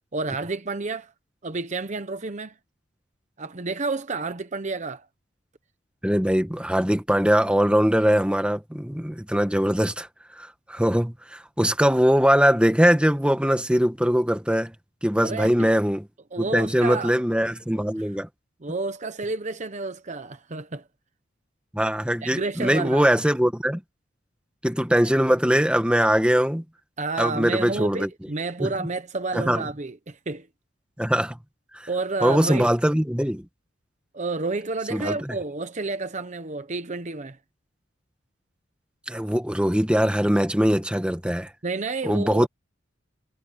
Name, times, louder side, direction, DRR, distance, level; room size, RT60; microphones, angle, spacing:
voice 1, 0.1-1.1 1.4-2.5 3.4-5.1 15.2-15.7 16.3-17.1 18.6-20.8 22.2-23.1 27.0-30.5 31.9-32.7 34.1-37.4 41.6-42.5, right 3 dB, 35° right, 0.9 m, -30 dB
voice 2, 6.0-10.1 10.4-14.7 15.0-16.0 16.4-18.3 21.7-23.8 24.6-26.6 27.2-28.1 28.6-28.7 29.3-29.6 31.0-31.4 31.7-31.9 32.2-33.5 34.9-35.3 39.1-41.5 42.0-42.5, equal, 5° right, 1.5 m, -21 dB
head